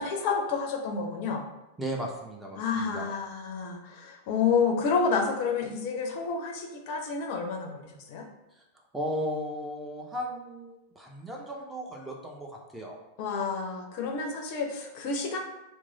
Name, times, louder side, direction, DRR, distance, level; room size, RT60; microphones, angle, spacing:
voice 1, 0.0-1.4 2.6-8.3 13.2-15.4, left 5 dB, 45° left, 2 dB, 0.5 m, -29 dB
voice 2, 1.8-3.1 8.5-8.6 8.9-13.0, equal, 10° right, -1 dB, 0.5 m, -36 dB
3.0 x 2.1 x 3.8 m, 0.96 s
figure-of-eight pair, 90°, 0 cm